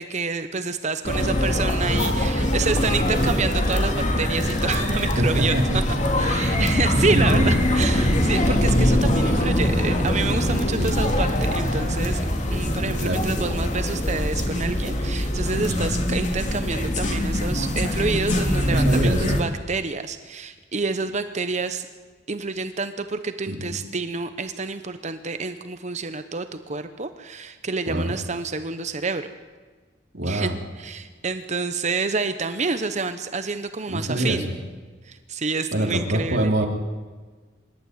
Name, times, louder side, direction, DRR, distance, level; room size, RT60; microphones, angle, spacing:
voice 1, 0.0-5.6 6.2-12.2 12.5-21.9 22.3-29.3 30.3-30.5 30.8-34.5 35.0-36.5, right 4 dB, 40° right, 10 dB, 0.9 m, -28 dB
sound 1, 1.0-19.4, left 1 dB, 45° left, 2.7 m, -23 dB
voice 2, 5.2-5.8 7.1-7.6 10.8-10.9 13.0-13.2 15.6-16.0 18.6-19.4 23.5-23.7 27.9-28.1 30.1-30.6 33.9-34.6 35.7-36.7, right 1 dB, 65° right, 2 dB, 3.3 m, -25 dB
25.5 x 12.0 x 9.5 m, 1.4 s
head